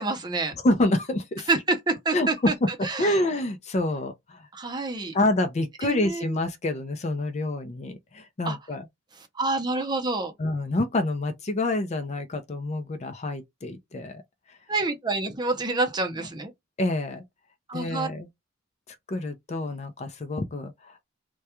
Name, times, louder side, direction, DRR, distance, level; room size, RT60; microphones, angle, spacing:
voice 1, 0.0-0.5 1.5-2.5 2.8-3.1 4.5-5.1 5.8-6.3 8.4-8.6 9.4-10.3 14.7-16.5 17.7-18.1, right 3 dB, 20° right, 0.6 m, -27 dB
voice 2, 0.6-1.5 2.1-2.7 3.0-4.5 5.1-8.9 10.4-14.2 14.5-14.6 16.2-16.3 16.8-17.2 17.7-18.3 18.9-21.0, left 1 dB, 35° left, 0.4 m, -27 dB
2.3 x 2.2 x 2.8 m
head